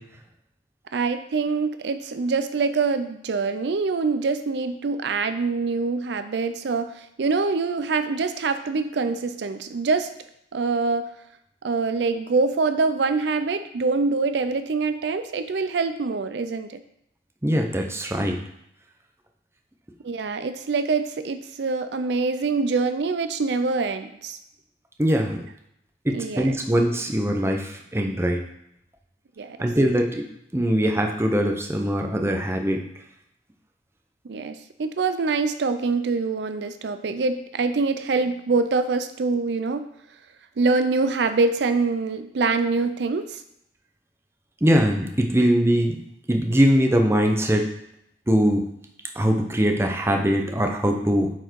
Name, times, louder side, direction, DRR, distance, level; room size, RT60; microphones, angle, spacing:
voice 1, 0.9-10.1 10.5-11.1 11.6-16.8 20.0-24.4 26.1-26.6 29.4-29.7 34.2-39.9 40.6-43.4, right 4 dB, 70° right, 10 dB, 0.4 m, -25 dB
voice 2, 17.4-18.4 25.0-25.4 26.0-28.4 29.6-30.2 30.5-32.8 44.6-46.0 46.3-47.7 48.3-48.6 49.2-51.3, equal, 15° right, 3 dB, 0.7 m, -21 dB
8.1 x 4.4 x 4.6 m, 0.77 s
head